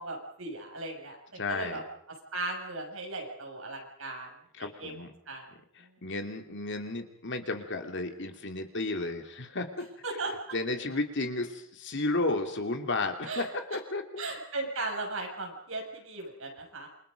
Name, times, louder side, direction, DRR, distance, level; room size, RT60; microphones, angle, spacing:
voice 1, 0.0-1.8 2.3-4.3 4.8-4.9 5.3-5.5 10.0-10.4 13.2-13.5 14.2-16.9, right 2 dB, 75° right, 2 dB, 7.0 m, -37 dB
voice 2, 1.3-1.8 4.5-5.1 5.7-9.9 10.5-14.3, left 2 dB, 60° left, 5 dB, 2.9 m, -33 dB
28.0 x 24.5 x 5.3 m, 0.67 s
head